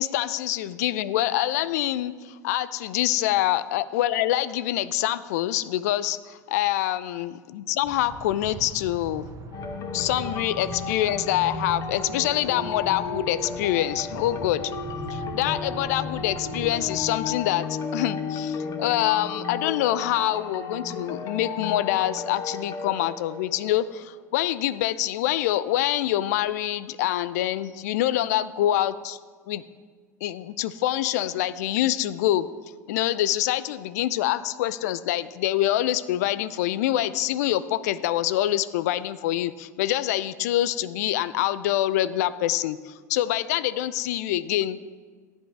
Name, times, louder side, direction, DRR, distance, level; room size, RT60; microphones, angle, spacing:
voice 1, 0.0-9.3 9.9-14.7 15.1-29.2 29.5-29.6 30.2-32.5 32.9-44.8, left 13 dB, 65° left, 16 dB, 0.4 m, -25 dB
sound 1, 7.8-17.1, right 3 dB, 35° right, 1.0 m, -40 dB
sound 2, 9.5-24.0, left 5 dB, 35° left, 1.1 m, -34 dB
15.0 x 8.1 x 3.4 m, 1.5 s
hypercardioid pair, 80°, 9 cm